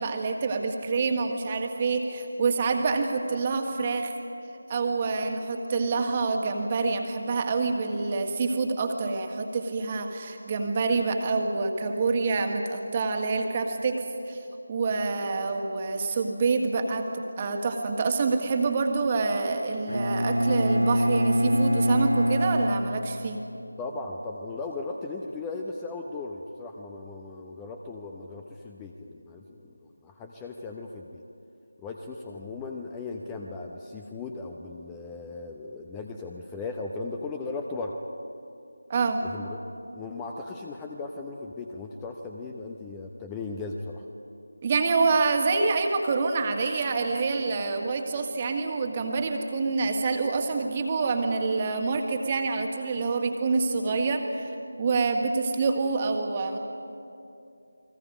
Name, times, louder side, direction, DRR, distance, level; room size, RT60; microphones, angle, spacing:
voice 1, 0.0-4.1 4.7-14.4 14.7-23.4 38.9-39.2 44.6-54.5 54.8-56.6, right 4 dB, 25° right, 4 dB, 1.8 m, -27 dB
Bowed string instrument, 19.9-23.7, equal, 90° right, 0.7 m, -25 dB
voice 2, 23.8-31.2 31.8-38.0 39.2-39.6 39.9-44.0, left 3 dB, 10° left, 2 dB, 0.8 m, -37 dB
29.5 x 21.5 x 5.1 m, 2.7 s
figure-of-eight pair, 160°, 0 cm